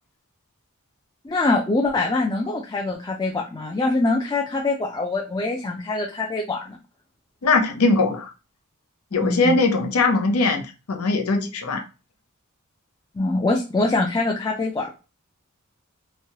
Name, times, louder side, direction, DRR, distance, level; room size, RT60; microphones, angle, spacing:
voice 1, 1.2-6.8 9.1-9.6 13.1-14.9, left 2 dB, 20° left, 0.4 m, -24 dB
voice 2, 7.4-8.3 9.1-10.6 10.9-11.8, left 3 dB, 75° left, 0.6 m, -20 dB
3.1 x 2.1 x 2.8 m
head